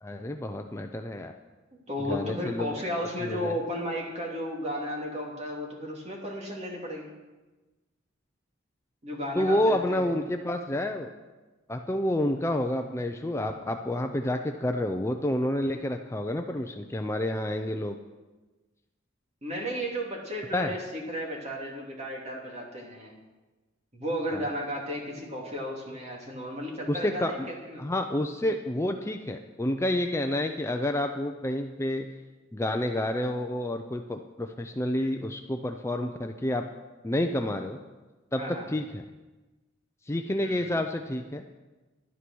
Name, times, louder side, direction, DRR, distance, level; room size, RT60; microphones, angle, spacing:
voice 1, 0.0-1.3 2.1-2.8 3.2-3.6 9.4-11.1 11.7-18.0 20.5-20.7 24.3-24.5 26.9-27.5 27.8-32.1 32.5-36.6 37.0-37.8 38.3-39.0 40.1-41.4, left 1 dB, 15° left, 5 dB, 0.5 m, -29 dB
voice 2, 1.9-7.1 9.0-10.2 19.4-23.1 23.9-27.4 27.7-27.8 38.4-38.6 40.4-40.7, equal, 35° right, -1 dB, 2.7 m, -34 dB
11.5 x 11.5 x 6.2 m, 1.2 s
head